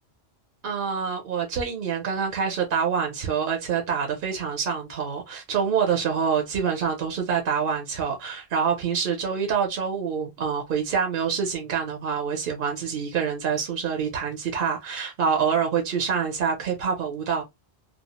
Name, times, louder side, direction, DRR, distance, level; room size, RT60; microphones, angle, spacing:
voice 1, 0.6-17.4, right 6 dB, 60° right, 0.8 m, -26 dB
2.3 x 2.0 x 2.8 m
omnidirectional pair, 1.1 m